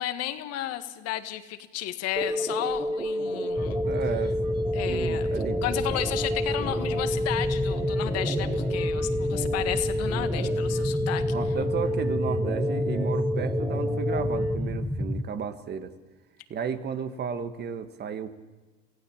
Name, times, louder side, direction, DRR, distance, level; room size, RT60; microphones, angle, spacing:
voice 1, 0.0-3.8 4.7-5.3 5.6-11.2, left 13 dB, 50° left, 9 dB, 1.9 m, -33 dB
sound 1, 2.2-14.6, equal, 15° right, 2.8 m, -29 dB
sound 2, 3.6-15.2, left 1 dB, 5° left, 1.2 m, -30 dB
voice 2, 3.8-4.3 4.9-5.6 11.3-15.9 16.5-18.4, right 7 dB, 35° right, 9 dB, 1.7 m, -33 dB
27.5 x 16.0 x 7.5 m, 1.3 s
supercardioid pair, 110°, 31 cm